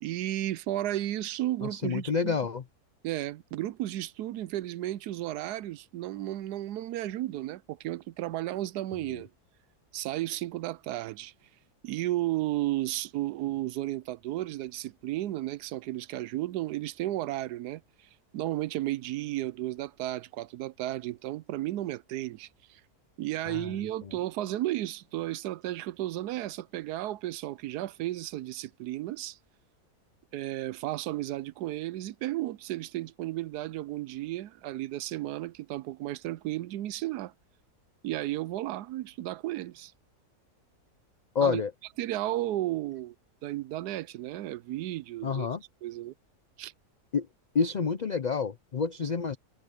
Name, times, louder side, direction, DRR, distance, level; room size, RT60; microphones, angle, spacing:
voice 1, 0.0-2.3 3.0-9.3 9.9-11.3 11.8-17.8 18.3-22.8 23.2-29.4 30.3-37.3 38.0-39.9 41.4-41.6 42.0-43.1 43.4-45.5 45.8-46.1 46.6-46.7, right 15 dB, 90° right, 1.2 m, -33 dB
voice 2, 1.6-2.6 8.9-9.2 23.5-23.7 24.0-24.1 41.3-41.7 45.2-45.6 47.1-47.3 47.5-49.4, left 5 dB, 55° left, 0.4 m, -29 dB
omnidirectional pair, 1.6 m